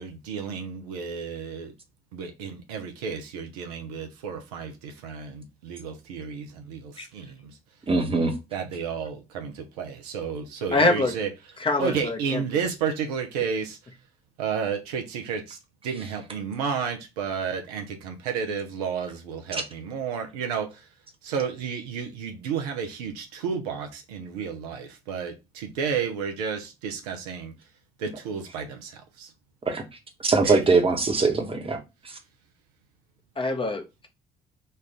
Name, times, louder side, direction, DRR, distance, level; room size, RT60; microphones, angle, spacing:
voice 1, 0.0-1.7 2.1-7.6 8.5-11.3 11.8-13.8 14.4-15.6 15.8-20.9 21.2-27.5 28.0-29.3 30.4-30.6, right 6 dB, 70° right, 0.6 m, -32 dB
voice 2, 7.9-8.3 29.7-29.8 30.2-31.8, right 4 dB, 30° right, 1.0 m, -21 dB
voice 3, 10.7-11.1 11.6-12.4 33.4-34.1, left 2 dB, 25° left, 0.9 m, -24 dB
4.3 x 2.5 x 3.3 m
figure-of-eight pair, 45°, 20 cm